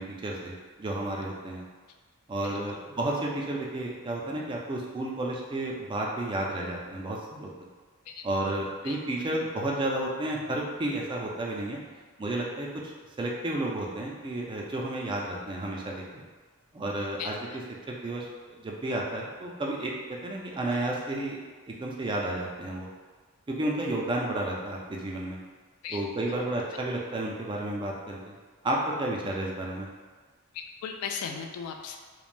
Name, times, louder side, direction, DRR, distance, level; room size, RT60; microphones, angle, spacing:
voice 1, 0.0-1.6 2.3-7.5 8.2-11.8 12.2-12.7 13.2-16.2 16.7-17.6 17.9-18.3 18.6-19.9 20.2-21.4 21.7-22.9 23.5-25.4 25.9-28.3 28.6-29.9, right 1 dB, 20° right, -2 dB, 0.3 m, -32 dB
voice 2, 30.8-32.0, left 7 dB, 80° left, 5 dB, 0.3 m, -35 dB
3.1 x 2.1 x 2.5 m, 1.4 s
head